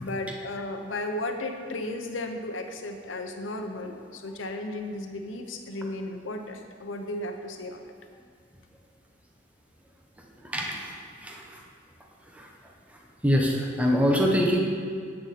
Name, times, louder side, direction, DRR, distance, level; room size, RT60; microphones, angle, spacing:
voice 1, 0.0-7.8, left 1 dB, 85° left, 5 dB, 0.9 m, -34 dB
voice 2, 10.5-10.9 11.2-11.6 12.4-12.5 13.2-14.6, equal, 5° right, 0 dB, 0.9 m, -24 dB
10.5 x 8.6 x 4.2 m, 2.2 s
head